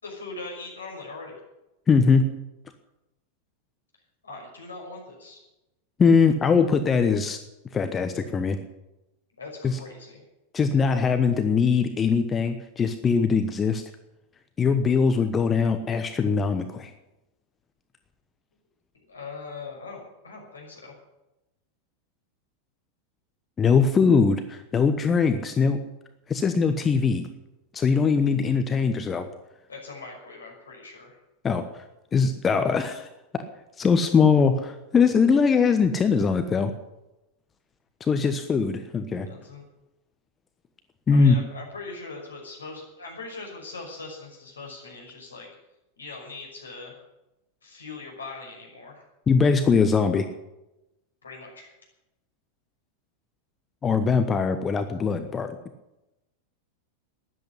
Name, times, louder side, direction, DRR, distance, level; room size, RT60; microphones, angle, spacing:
voice 1, 0.0-1.3 4.2-5.4 9.4-10.2 18.9-20.9 29.7-31.2 39.3-39.6 41.1-45.5 46.0-46.9 47.6-49.0 51.2-51.7, left 3 dB, 75° left, 0 dB, 5.8 m, -40 dB
voice 2, 1.9-2.3 6.0-7.4 7.7-8.6 9.6-9.8 10.5-13.8 14.6-16.9 23.6-25.8 26.3-27.3 27.7-29.3 31.4-31.6 32.1-33.1 33.8-36.7 38.0-39.3 41.1-41.4 49.3-50.3 53.8-55.5, left 5 dB, 20° left, 8 dB, 1.1 m, -21 dB
13.5 x 11.0 x 9.9 m, 0.96 s
figure-of-eight pair, 90°, 0 cm